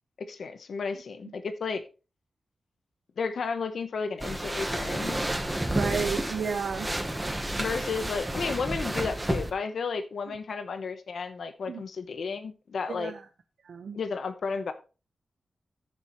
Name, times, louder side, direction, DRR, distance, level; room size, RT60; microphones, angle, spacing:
voice 1, 0.2-1.8 3.2-5.2 7.6-13.1 13.9-14.7, left 5 dB, 65° left, 1.0 m, -33 dB
sound 1, 4.2-9.5, right 1 dB, 10° right, 1.1 m, -31 dB
voice 2, 5.7-6.9 11.7-11.8 12.9-13.2 13.6-14.0, right 6 dB, 75° right, 0.9 m, -32 dB
14.5 x 7.0 x 3.1 m
wide cardioid pair, 180°, 0 cm